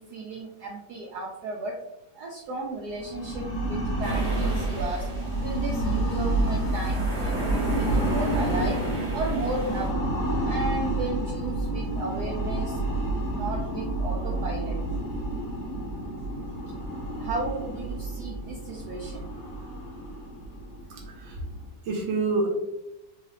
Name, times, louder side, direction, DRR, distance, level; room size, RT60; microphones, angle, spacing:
voice 1, 0.0-1.8 2.1-5.1 5.4-8.8 9.1-9.9 10.4-12.8 13.3-14.8 17.2-19.3, right 2 dB, 70° right, -2 dB, 1.0 m, -34 dB
sound 1, 2.9-21.6, right 1 dB, 45° left, 1.1 m, -29 dB
sound 2, 4.0-9.9, right 1 dB, 45° right, 1.3 m, -36 dB
voice 2, 20.9-21.4 21.8-22.5, right 3 dB, 85° right, 0 dB, 1.5 m, -28 dB
3.8 x 3.1 x 2.7 m, 0.94 s
omnidirectional pair, 2.1 m